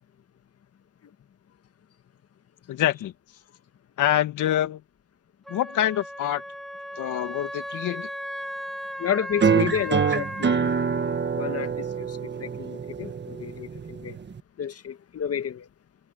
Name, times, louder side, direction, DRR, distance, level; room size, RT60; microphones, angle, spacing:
voice 1, 2.7-3.1 4.0-4.8 5.5-6.4 7.0-8.1, left 12 dB, 80° left, 2.2 m, -25 dB
Wind instrument woodwind instrument, 5.5-10.6, equal, ahead, 0.7 m, -36 dB
voice 2, 9.0-10.7 11.4-14.2 14.6-15.7, left 9 dB, 50° left, 1.8 m, -31 dB
sound 1, 9.4-14.4, right 6 dB, 35° right, 1.6 m, -26 dB
open air
cardioid pair, 90°, 30 cm